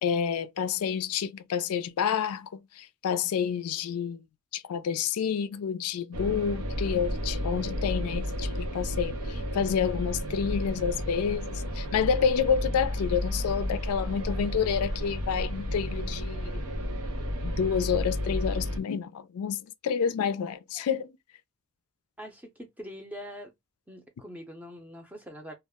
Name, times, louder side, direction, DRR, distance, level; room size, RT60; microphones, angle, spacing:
voice 1, 0.0-4.2 4.5-16.6 17.4-21.1, left 7 dB, 80° left, 0.4 m, -29 dB
sound 1, 6.1-18.8, equal, 80° right, 0.6 m, -32 dB
voice 2, 22.2-23.5 23.9-25.5, equal, 5° right, 0.5 m, -43 dB
2.3 x 2.0 x 3.4 m
head